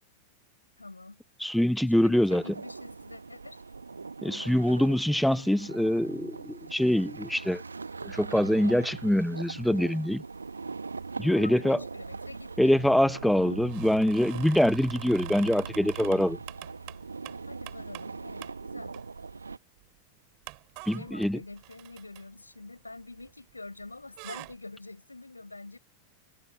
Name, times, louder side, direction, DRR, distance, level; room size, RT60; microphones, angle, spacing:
voice 1, 0.8-1.2 1.8-3.6 11.2-12.8 13.3-13.6 17.4-19.0 20.9-25.8, left 2 dB, 80° left, 6.9 m, -46 dB
voice 2, 1.4-2.4 4.2-7.6 8.0-10.2 11.2-11.8 12.6-16.4 20.9-21.4, left 1 dB, ahead, 0.4 m, -24 dB
sound 1, 2.3-19.6, right 4 dB, 75° right, 1.0 m, -41 dB
sound 2, 13.6-18.1 18.4-18.6 18.9-19.4 19.8-19.9 20.4-23.5 23.8-24.6, right 36 dB, 45° right, 5.1 m, -46 dB
figure-of-eight pair, 90°, 0 cm